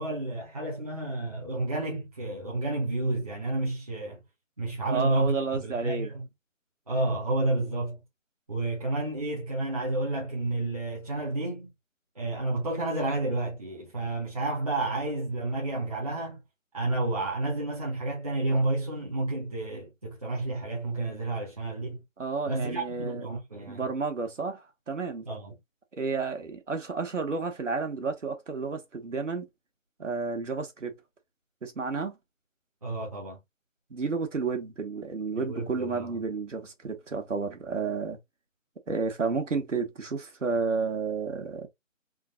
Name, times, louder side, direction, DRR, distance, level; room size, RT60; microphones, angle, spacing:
voice 1, 0.0-4.2 4.6-6.2 6.9-8.0 8.5-11.7 12.1-16.4 16.7-22.0 22.5-23.9 25.3-25.6 32.8-33.4 35.4-36.2, right 2 dB, 30° right, 1.0 m, -30 dB
voice 2, 4.9-6.1 22.2-23.2 23.7-25.3 25.9-29.5 30.0-30.9 31.6-32.1 33.9-38.2 38.9-41.7, right 4 dB, 65° right, 1.5 m, -31 dB
3.9 x 2.4 x 3.7 m
figure-of-eight pair, 170°, 39 cm